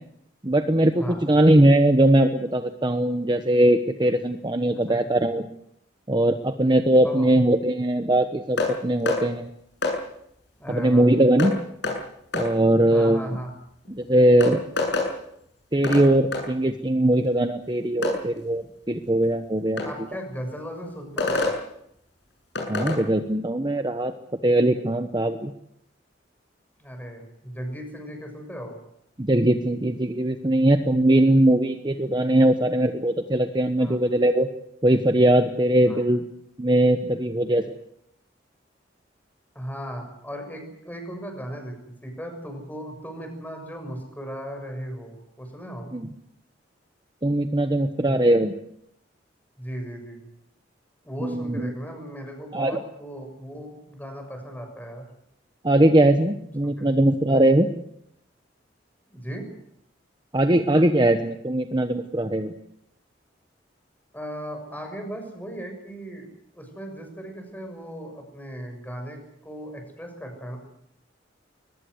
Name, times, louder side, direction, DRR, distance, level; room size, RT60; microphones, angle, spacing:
voice 1, 0.4-5.5 6.1-9.5 10.7-11.6 12.3-13.4 13.9-14.6 15.7-19.8 22.7-24.1 24.4-25.5 29.2-34.5 34.8-36.2 36.6-37.6 45.9-46.1 47.2-48.5 51.2-51.7 52.5-52.8 55.6-57.7 60.3-62.5, right 1 dB, 25° right, 7 dB, 1.1 m, -20 dB
voice 2, 1.0-1.3 4.7-5.0 7.0-7.3 10.6-11.1 12.9-13.5 19.8-21.5 26.8-28.7 33.8-34.0 35.8-36.0 39.5-45.9 48.0-48.2 49.6-50.2 51.0-55.0 56.6-56.9 59.1-59.5 64.1-66.3 66.5-70.6, equal, 10° left, 4 dB, 6.7 m, -37 dB
sound 1, 8.6-8.7 9.1-9.2 9.8-10.0 11.4-11.5 11.8-12.0 12.3-12.5 13.8-13.9 14.4-15.1 15.8-16.1 16.3-16.4 18.0-18.2 19.8-19.9 21.2-21.6 22.5-23.0, left 3 dB, 70° left, 7.7 m, -25 dB
22.5 x 20.0 x 8.0 m, 0.76 s
head